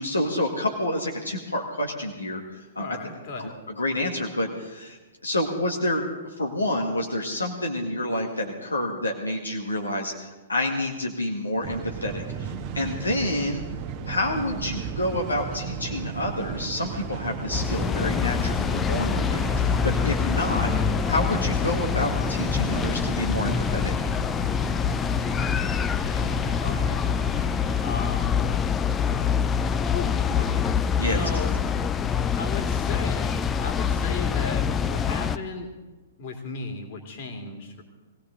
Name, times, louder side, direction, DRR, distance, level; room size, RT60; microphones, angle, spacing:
voice 1, 0.0-2.9 3.4-3.5 3.8-6.1 6.4-13.6 14.1-20.7 21.1-23.9 31.0-31.2, left 1 dB, 80° left, 0 dB, 1.9 m, -28 dB
voice 2, 2.7-3.5 26.0-27.2 27.8-28.4 29.9-30.7 31.1-31.6 32.4-35.7 36.2-37.8, left 3 dB, 45° left, 3 dB, 2.8 m, -36 dB
sound 1, 11.6-28.0, right 7 dB, 30° right, 1.3 m, -35 dB
sound 2, 17.5-35.4, left 7 dB, 20° left, 0.5 m, -25 dB
20.5 x 17.0 x 3.9 m, 1.2 s
figure-of-eight pair, 115°, 0 cm